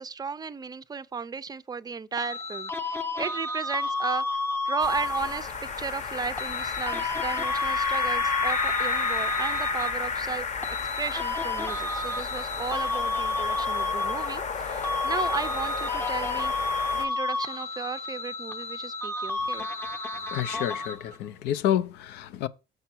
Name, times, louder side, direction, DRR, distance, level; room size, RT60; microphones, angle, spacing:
voice 1, 0.0-4.2 4.6-5.5 5.8-10.5 11.0-16.5 16.9-19.7, right 5 dB, 25° right, 0.5 m, -34 dB
sound 1, 2.2-5.5 6.4-10.2 10.6-14.6 14.8-21.2, left 2 dB, 15° left, 0.7 m, -31 dB
sound 2, 4.8-17.1, left 5 dB, 45° left, 0.9 m, -31 dB
voice 2, 20.3-22.5, left 11 dB, 85° left, 0.6 m, -29 dB
6.7 x 5.7 x 4.4 m
cardioid pair, 110°, 17 cm